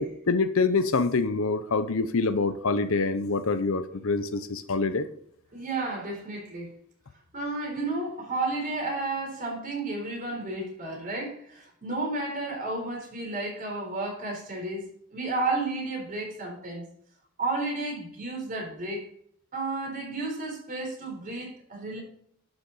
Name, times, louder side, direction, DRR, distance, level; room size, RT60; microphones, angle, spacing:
voice 1, 0.0-5.0, left 4 dB, 65° left, 12 dB, 0.7 m, -26 dB
voice 2, 5.5-6.7 7.3-16.8 17.4-19.1 19.5-22.0, right 2 dB, 40° right, -1 dB, 4.0 m, -32 dB
11.5 x 6.5 x 4.1 m, 0.66 s
head